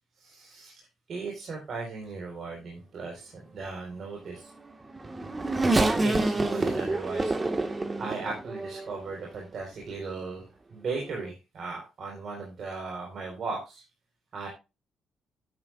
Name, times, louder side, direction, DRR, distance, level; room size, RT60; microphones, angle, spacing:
voice 1, 0.2-0.8 1.1-4.5 6.0-7.4 8.0-10.4 10.7-13.8 14.3-14.5, right 4 dB, 55° right, -1 dB, 4.3 m, -37 dB
Race car auto racing / Accelerating revving vroom, 4.6-9.1 9.8-9.9 11.1-11.2, right 2 dB, 25° right, 1.6 m, -27 dB
12.0 x 10.0 x 2.5 m, 0.27 s
cardioid pair, 90°, 0 cm